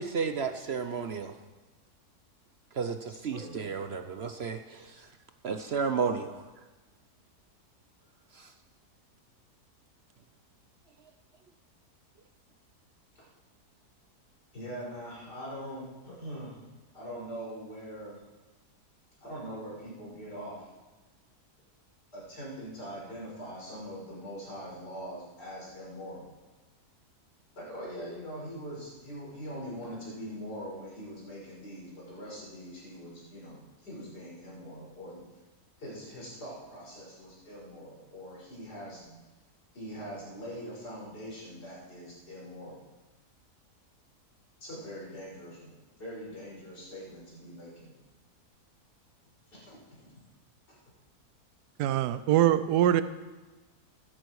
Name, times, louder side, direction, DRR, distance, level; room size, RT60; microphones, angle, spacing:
voice 1, 0.0-1.3 2.7-5.1 5.4-6.4 8.3-8.5, right 5 dB, 55° right, 7 dB, 0.8 m, -32 dB
voice 2, 3.1-3.7 13.1-13.2 14.5-16.6 16.9-18.2 19.2-20.6 22.1-26.3 27.5-35.2 35.8-39.2 39.7-42.8 44.6-48.0 49.5-50.1, equal, 85° left, -6 dB, 6.7 m, -42 dB
voice 3, 51.8-53.0, right 12 dB, 90° right, 13 dB, 1.2 m, -23 dB
15.5 x 13.5 x 4.7 m, 1.2 s
omnidirectional pair, 1.7 m